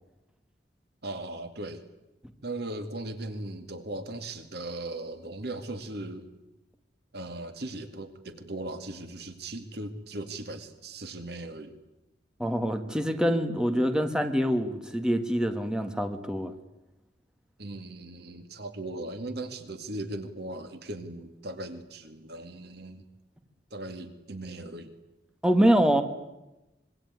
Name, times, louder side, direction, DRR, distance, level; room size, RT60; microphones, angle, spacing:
voice 1, 1.0-1.8 2.4-6.3 7.1-11.8 17.6-23.0 23.7-24.9, right 2 dB, 65° right, 8 dB, 2.2 m, -38 dB
voice 2, 12.4-16.5 25.4-26.0, equal, 5° right, 7 dB, 1.8 m, -25 dB
26.0 x 23.0 x 9.5 m, 0.96 s
head